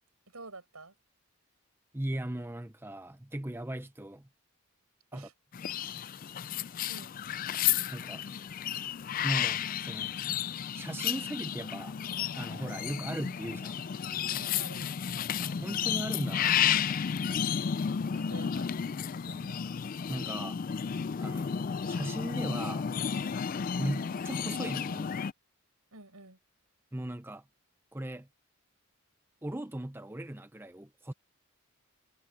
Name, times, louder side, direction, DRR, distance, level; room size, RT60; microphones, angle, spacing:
voice 1, 0.3-0.9 5.1-5.3 6.9-7.2 14.4-15.0 18.1-18.7 19.2-19.6 23.8-24.1 25.9-26.4, right 3 dB, 85° right, 7.8 m, -49 dB
voice 2, 1.9-4.3 5.1-5.3 7.9-8.3 9.2-10.1 10.7-12.0 12.4-13.8 15.4-17.0 20.1-20.6 21.2-22.9 23.8-25.1 26.9-27.4 27.9-28.3 29.4-31.1, right 1 dB, 10° right, 0.7 m, -38 dB
sound 1, 5.5-25.3, left 8 dB, 40° left, 0.3 m, -32 dB
head